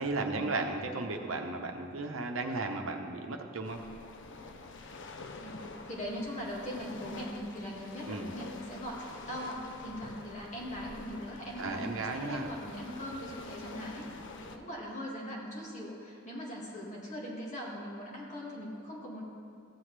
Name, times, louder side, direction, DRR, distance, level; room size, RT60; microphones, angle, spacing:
voice 1, 0.0-3.8 8.1-8.3 11.6-12.5, right 3 dB, 70° right, 3 dB, 0.9 m, -35 dB
sound 1, 3.6-14.6, left 3 dB, 60° left, 0.6 m, -47 dB
voice 2, 5.3-14.1 14.4-19.2, equal, 35° left, -4 dB, 2.0 m, -40 dB
14.5 x 7.7 x 3.3 m, 2.5 s
head